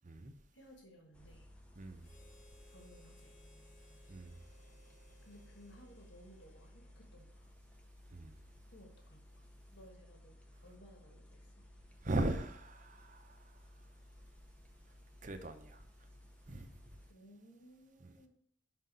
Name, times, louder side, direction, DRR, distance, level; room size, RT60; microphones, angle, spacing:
voice 1, 0.5-1.5 2.7-3.3 5.2-7.5 8.7-9.4 9.7-11.5 17.1-18.3, equal, 70° left, 1.4 m, -59 dB
sound 1, 1.1-17.1, left 1 dB, 5° left, 0.6 m, -58 dB
voice 2, 1.8-2.2 4.1-4.4 8.1-8.5 12.0-14.0 14.9-15.0 15.2-15.8 16.5-17.0 18.0-18.1, right 2 dB, 40° right, 0.7 m, -40 dB
Harmonica, 2.0-7.5, left 1 dB, 40° left, 1.1 m, -66 dB
5.6 x 3.9 x 5.5 m
head